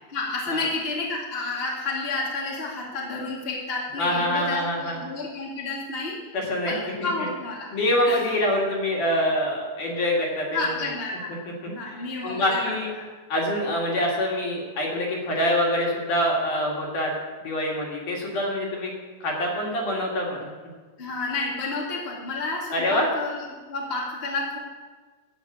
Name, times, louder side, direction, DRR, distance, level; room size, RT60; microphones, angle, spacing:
voice 1, 0.1-6.2 6.6-7.7 8.0-8.2 10.5-11.4 11.7-13.0 21.0-24.6, left 3 dB, 30° left, -4 dB, 1.0 m, -30 dB
voice 2, 4.0-5.0 6.3-7.3 7.7-10.9 11.6-12.9 13.3-17.1 17.4-18.9 19.2-20.5 22.7-23.1, left 1 dB, 50° left, -2 dB, 3.1 m, -25 dB
13.0 x 6.3 x 8.5 m, 1.4 s
omnidirectional pair, 5.3 m